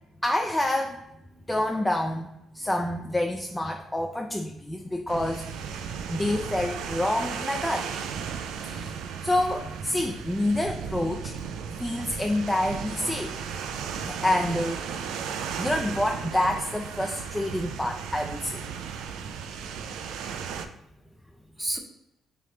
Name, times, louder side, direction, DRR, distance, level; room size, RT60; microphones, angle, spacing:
voice 1, 0.2-1.0 1.5-2.3 2.5-5.6 6.1-7.9 8.6-11.3 11.8-13.5 14.0-15.0 15.4-18.6, left 1 dB, 10° left, 3 dB, 0.3 m, -28 dB
sound 1, 5.1-20.7, right 7 dB, 90° right, 0.3 m, -35 dB
voice 2, 19.1-20.1 20.3-20.8 21.3-21.8, right 1 dB, 10° right, 3 dB, 0.7 m, -38 dB
3.3 x 3.2 x 3.6 m, 0.88 s
cardioid pair, 90°, 0 cm